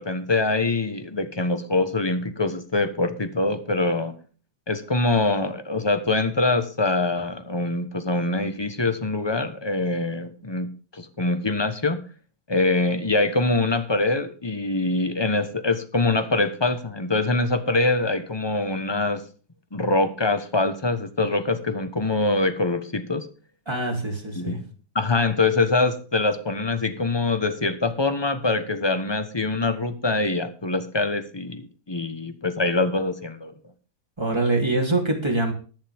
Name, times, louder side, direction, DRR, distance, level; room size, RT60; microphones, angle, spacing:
voice 1, 0.0-4.1 4.7-12.0 12.5-19.2 19.7-23.3 24.4-24.6 24.9-33.5, left 2 dB, 20° left, 10 dB, 0.9 m, -24 dB
voice 2, 23.7-24.6 34.2-35.5, right 2 dB, 15° right, 0 dB, 3.2 m, -24 dB
14.5 x 11.5 x 3.6 m, 0.38 s
omnidirectional pair, 2.1 m